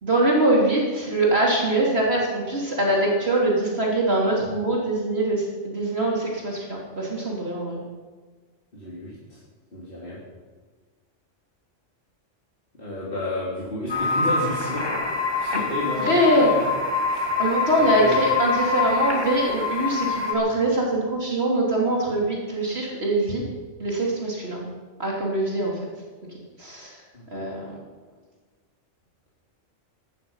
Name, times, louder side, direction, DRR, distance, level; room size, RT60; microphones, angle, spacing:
voice 1, 0.0-7.8 16.0-16.5 17.4-23.4 23.8-24.7 25.0-25.8 26.6-27.0 27.3-27.8, right 1 dB, 55° right, -3 dB, 3.7 m, -23 dB
voice 2, 8.7-9.4 9.7-10.2 12.8-14.9 15.4-16.7 17.0-17.3 17.7-18.2 27.1-27.5, left 2 dB, 45° left, -7 dB, 4.0 m, -31 dB
sound 1, 13.9-20.3, left 4 dB, 20° left, 2.3 m, -25 dB
17.0 x 13.0 x 5.8 m, 1.4 s
omnidirectional pair, 1.3 m